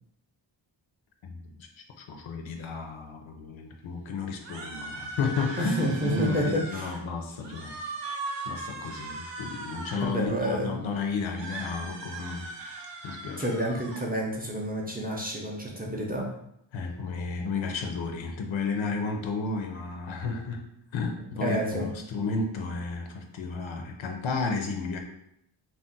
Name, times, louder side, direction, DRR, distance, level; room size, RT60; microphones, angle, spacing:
voice 1, 1.2-1.7 2.0-7.8 8.5-12.5 13.0-13.5 16.7-25.0, left 4 dB, 80° left, 3 dB, 0.6 m, -32 dB
sound 1, 4.4-7.0 7.4-10.2 11.3-14.1, right 2 dB, 70° right, 0.7 m, -39 dB
voice 2, 5.6-6.9 10.0-10.9 13.4-16.3 21.4-21.9, equal, 20° right, -2 dB, 0.4 m, -29 dB
2.5 x 2.1 x 3.8 m, 0.78 s
wide cardioid pair, 135°, 46 cm